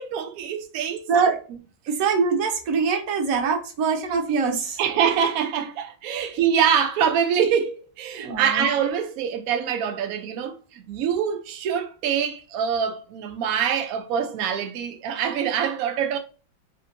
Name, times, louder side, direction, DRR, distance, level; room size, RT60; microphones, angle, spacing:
voice 1, 0.0-1.3 4.8-16.2, right 8 dB, 85° right, 0.7 m, -25 dB
voice 2, 1.9-4.8 6.2-6.3 8.1-8.7, right 5 dB, 60° right, 1.0 m, -23 dB
4.2 x 2.7 x 2.5 m
omnidirectional pair, 2.1 m